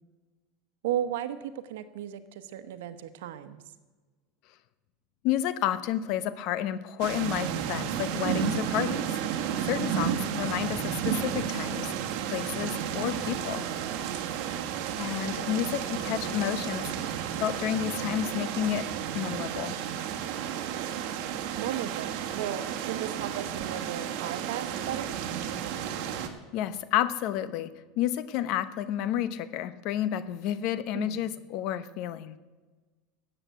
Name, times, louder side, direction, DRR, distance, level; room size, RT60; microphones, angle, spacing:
voice 1, 0.8-3.6 9.7-10.2 21.6-25.1 30.9-31.3, right 11 dB, 85° right, 11 dB, 1.1 m, -35 dB
voice 2, 5.2-9.1 9.6-11.9 12.3-13.7 15.0-18.9 19.1-19.8 26.5-32.4, left 11 dB, 55° left, 14 dB, 0.8 m, -30 dB
sound 1, 7.0-26.3, right 9 dB, 60° right, 1.5 m, -32 dB
13.5 x 8.1 x 8.1 m, 1.3 s
supercardioid pair, 145°, 0 cm